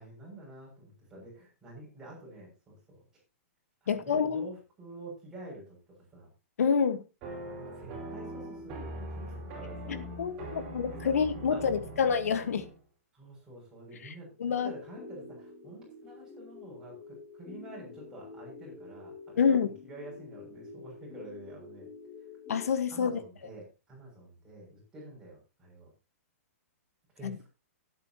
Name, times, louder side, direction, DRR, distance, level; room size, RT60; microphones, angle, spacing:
voice 1, 0.0-3.0 3.8-5.8 6.1-6.3 7.6-10.1 10.9-11.2 11.5-12.0 13.1-21.9 22.9-25.9 27.1-27.5, right 1 dB, 10° right, 6.7 m, -48 dB
voice 2, 3.9-4.5 6.6-7.0 9.9-12.7 14.0-14.1 14.4-14.7 19.4-19.7 22.5-23.1 27.2-27.4, left 6 dB, 85° left, 1.5 m, -27 dB
sound 1, 7.2-12.8, right 1 dB, 25° right, 5.0 m, -41 dB
sound 2, 14.6-22.7, left 4 dB, 15° left, 3.1 m, -48 dB
18.5 x 9.0 x 2.9 m
hypercardioid pair, 175°, 8 cm